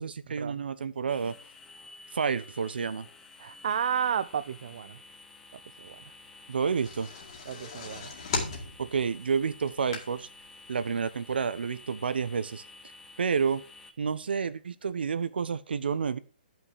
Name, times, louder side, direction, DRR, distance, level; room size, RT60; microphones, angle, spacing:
voice 1, 0.0-1.3 2.1-3.1 6.5-7.1 8.8-10.3 10.7-12.6 13.2-13.6 14.0-16.2, right 6 dB, 80° right, 14 dB, 0.9 m, -29 dB
sound 1, 1.1-13.9, left 3 dB, 5° left, 0.6 m, -51 dB
voice 2, 3.4-5.0 5.8-6.0 7.5-8.1, right 8 dB, 40° right, 13 dB, 0.3 m, -32 dB
sound 2, 6.5-10.5 10.9-11.0 11.3-11.4, left 4 dB, 30° left, 2.0 m, -37 dB
11.0 x 5.8 x 5.0 m, 0.37 s
hypercardioid pair, 180°, 5 cm